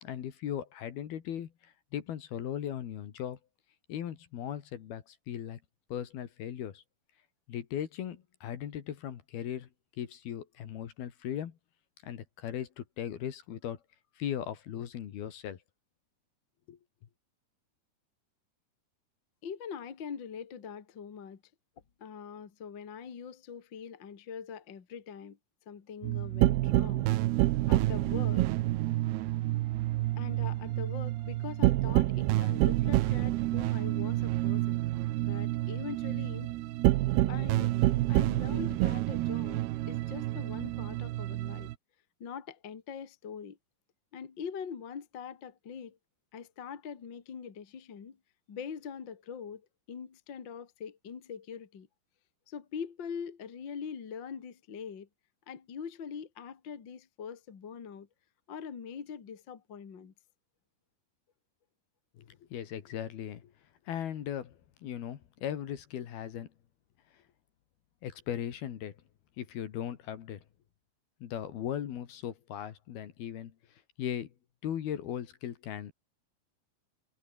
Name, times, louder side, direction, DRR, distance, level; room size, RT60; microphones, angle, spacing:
voice 1, 0.0-3.4 3.9-5.6 5.9-6.8 7.5-9.7 10.0-11.6 12.0-13.8 14.2-15.6 16.7-16.8 62.2-63.5 63.9-66.5 68.0-69.0 69.4-70.4 71.2-73.5 74.0-74.3 74.6-75.9, left 10 dB, 65° left, 3.6 m, -38 dB
voice 2, 19.4-21.4 22.0-25.4 25.7-27.1 27.7-28.5 30.2-34.8 35.2-36.6 37.3-37.8 38.1-41.7 42.2-43.6 44.1-46.0 46.3-48.2 48.5-49.6 49.9-51.9 52.5-55.1 55.5-58.1 58.5-60.1, left 7 dB, 40° left, 1.8 m, -43 dB
sound 1, 26.0-41.7, right 16 dB, 75° right, 2.6 m, -28 dB
omnidirectional pair, 5.2 m